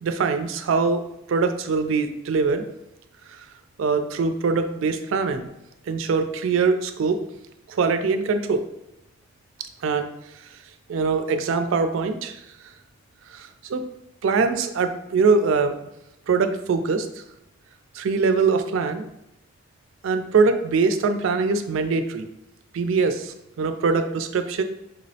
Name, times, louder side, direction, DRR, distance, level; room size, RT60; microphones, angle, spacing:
voice 1, 0.0-1.0 1.3-2.7 3.8-5.5 5.9-7.2 7.7-8.6 9.8-10.1 10.9-12.4 13.3-13.8 14.2-15.8 16.3-17.1 17.9-19.0 20.0-22.3 22.7-24.6, right 4 dB, 65° right, 8 dB, 0.3 m, -22 dB
5.4 x 2.0 x 2.7 m, 0.87 s
head